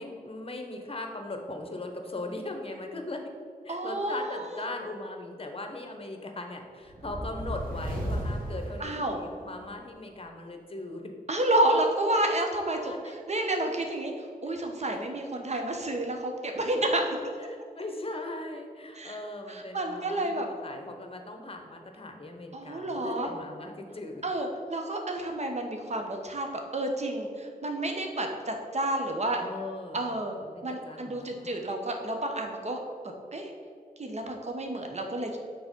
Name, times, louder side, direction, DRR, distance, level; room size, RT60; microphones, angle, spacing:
voice 1, 0.0-3.2 3.6-11.1 12.6-13.2 14.5-14.6 14.9-15.0 17.5-24.2 29.4-30.1 30.4-31.5, left 2 dB, 35° left, 4 dB, 1.1 m, -39 dB
voice 2, 3.7-4.7 8.8-9.2 11.3-17.2 18.9-19.2 19.5-20.5 22.5-23.3 24.2-29.4 29.9-30.4 30.6-33.5 34.0-35.4, right 1 dB, 45° right, 3 dB, 1.2 m, -30 dB
Fireball Woosh Pass fast, 6.9-9.6, equal, 65° right, 1.7 m, -34 dB
6.0 x 4.0 x 5.4 m, 2.2 s
cardioid pair, 40°, 16 cm